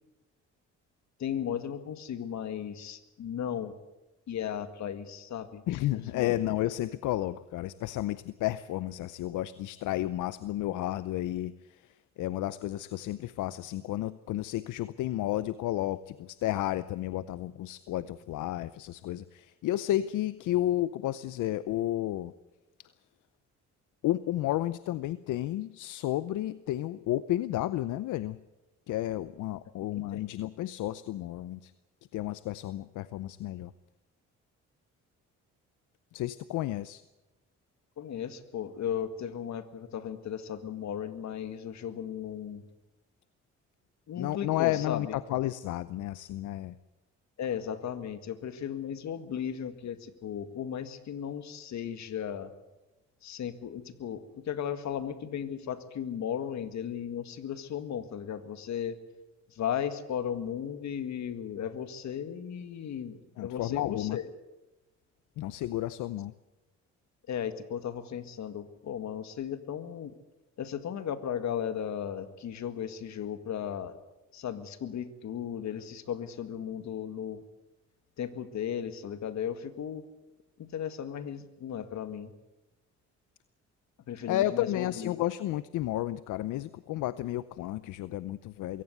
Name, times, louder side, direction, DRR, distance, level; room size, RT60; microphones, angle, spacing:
voice 1, 1.2-3.8 4.3-5.6 6.1-6.4 30.1-30.3 38.0-42.6 44.1-45.2 47.4-52.5 53.2-59.0 59.5-64.3 67.3-70.1 70.6-74.0 74.3-77.4 78.2-80.0 80.6-82.3 84.1-85.1, left 9 dB, 65° left, 11 dB, 1.9 m, -36 dB
voice 2, 5.7-22.3 24.0-28.4 28.9-31.7 32.1-33.7 36.1-37.0 44.2-46.8 63.4-64.2 65.4-66.3 84.3-88.8, left 14 dB, 85° left, 16 dB, 0.7 m, -32 dB
22.5 x 17.0 x 8.1 m, 1.0 s
cardioid pair, 90°, 30 cm